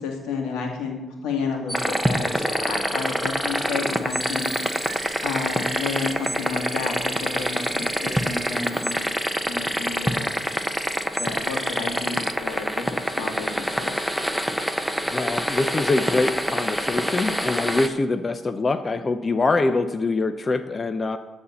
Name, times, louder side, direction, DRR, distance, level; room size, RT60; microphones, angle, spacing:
voice 1, 0.0-4.6 5.2-9.2 9.5-10.3 11.2-14.0, left 4 dB, 90° left, 1 dB, 2.2 m, -31 dB
sound 1, 1.7-17.9, equal, ahead, 0.9 m, -26 dB
sound 2, 3.9-9.1, right 9 dB, 70° right, 0.9 m, -42 dB
voice 2, 15.0-21.2, left 3 dB, 30° left, 9 dB, 0.6 m, -24 dB
12.5 x 4.3 x 7.1 m, 1.1 s
cardioid pair, 90°, 0 cm